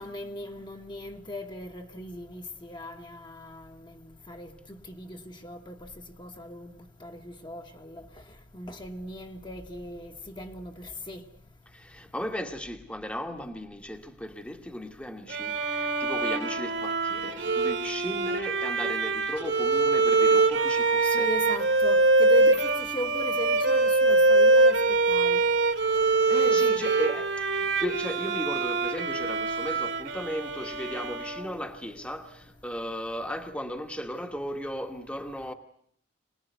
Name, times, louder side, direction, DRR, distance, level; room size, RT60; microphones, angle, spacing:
voice 1, 0.0-4.0 4.3-5.8 6.2-6.7 7.0-8.0 8.5-11.2 21.1-25.4 26.5-26.8, left 1 dB, 25° left, 1.4 m, -38 dB
voice 2, 11.7-21.3 26.3-35.5, equal, 5° left, 1.3 m, -36 dB
Bowed string instrument, 15.3-31.8, right 3 dB, 70° right, 2.4 m, -24 dB
25.0 x 19.5 x 9.3 m
head